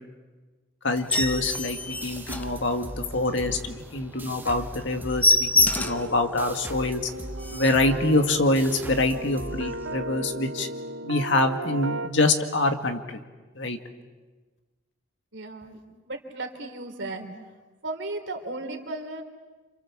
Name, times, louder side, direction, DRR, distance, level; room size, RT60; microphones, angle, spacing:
voice 1, 0.8-7.1 7.5-10.7 11.0-13.2 13.6-13.8, left 2 dB, 65° left, 6 dB, 2.0 m, -25 dB
sound 1, 0.9-3.1 3.5-3.7 4.0-4.1 4.4-4.6 4.8-6.1 6.6-6.7 7.1-7.2 7.4-7.9 8.6-8.8, left 2 dB, 10° left, 0.8 m, -25 dB
sound 2, 1.2-10.4, right 1 dB, 10° right, 1.7 m, -40 dB
sound 3, 5.8-12.1, right 2 dB, 85° right, 1.1 m, -36 dB
voice 2, 15.3-15.8 16.1-17.3 17.8-19.2, right 2 dB, 65° right, 4 dB, 3.5 m, -35 dB
29.0 x 27.5 x 7.4 m, 1.3 s
head